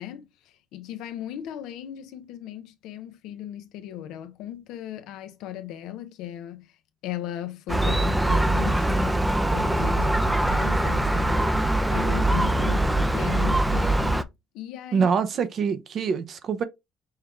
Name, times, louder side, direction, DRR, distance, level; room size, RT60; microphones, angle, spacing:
voice 1, 0.0-6.8 7.0-9.2 9.5-15.1, left 12 dB, 85° left, 0.6 m, -37 dB
Gull seagull, 7.7-14.2, right 1 dB, 10° right, 0.5 m, -23 dB
voice 2, 14.9-16.6, right 6 dB, 60° right, 0.7 m, -25 dB
5.6 x 2.3 x 3.3 m
supercardioid pair, 75°, 0 cm